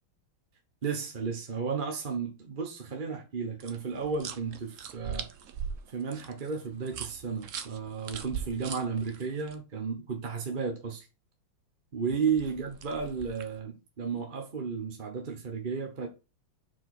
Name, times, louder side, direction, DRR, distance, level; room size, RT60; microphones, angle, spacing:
voice 1, 0.8-5.3 5.9-11.1 11.9-16.1, right 5 dB, 35° right, 0.9 m, -33 dB
sound 1, 3.6-9.5 12.1-13.6, right 7 dB, 70° right, 0.7 m, -41 dB
5.2 x 4.7 x 5.9 m
omnidirectional pair, 2.3 m